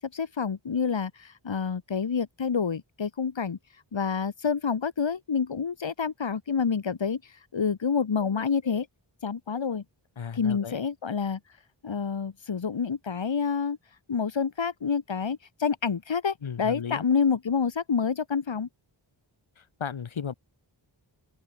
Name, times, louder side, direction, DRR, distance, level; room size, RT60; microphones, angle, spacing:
voice 1, 0.0-3.6 3.9-8.9 9.2-9.8 10.3-11.4 11.8-13.8 14.1-18.7, left 6 dB, 70° left, 6.3 m, -28 dB
voice 2, 10.2-10.8 16.4-17.0 19.6-20.3, left 7 dB, 90° left, 4.1 m, -35 dB
open air
wide cardioid pair, 115°, 46 cm